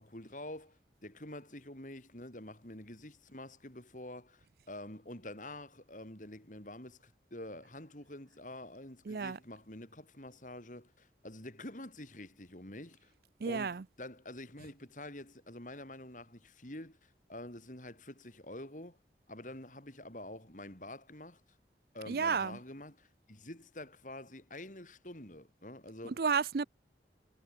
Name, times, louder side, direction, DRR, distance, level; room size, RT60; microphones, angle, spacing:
voice 1, 0.0-13.1 13.4-19.0 19.3-21.4 21.9-26.2, left 1 dB, 45° left, 4.7 m, -47 dB
voice 2, 9.1-9.4 13.4-13.8 22.1-22.6 26.0-26.6, right 5 dB, 55° right, 0.5 m, -32 dB
head